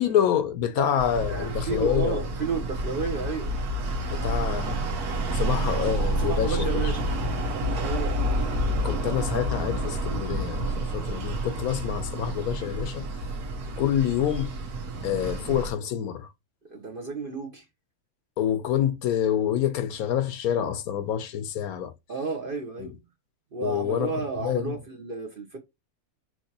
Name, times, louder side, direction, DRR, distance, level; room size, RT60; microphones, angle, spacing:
voice 1, 0.0-2.2 4.1-4.8 5.3-6.9 8.8-13.1 13.8-14.5 15.0-16.3 18.4-21.9 22.8-22.9 23.6-24.8, left 10 dB, 75° left, 1.1 m, -27 dB
voice 2, 0.8-3.5 6.2-7.0 7.8-8.1 8.8-9.0 16.7-17.7 22.1-22.9 23.5-25.6, right 4 dB, 45° right, 0.8 m, -32 dB
sound 1, 1.0-15.7, right 1 dB, 80° right, 1.5 m, -29 dB
5.8 x 3.0 x 2.8 m
omnidirectional pair, 1.6 m